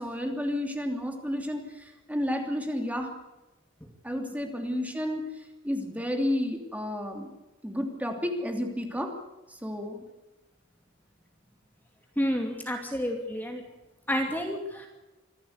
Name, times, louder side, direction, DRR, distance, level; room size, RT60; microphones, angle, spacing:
voice 1, 0.0-3.1 4.0-5.2 5.6-7.3 7.6-9.1 9.6-10.0, left 1 dB, 5° right, 3 dB, 2.9 m, -31 dB
voice 2, 12.2-13.6 14.1-14.9, equal, 10° left, 2 dB, 2.7 m, -30 dB
25.5 x 15.0 x 8.2 m, 1.0 s
head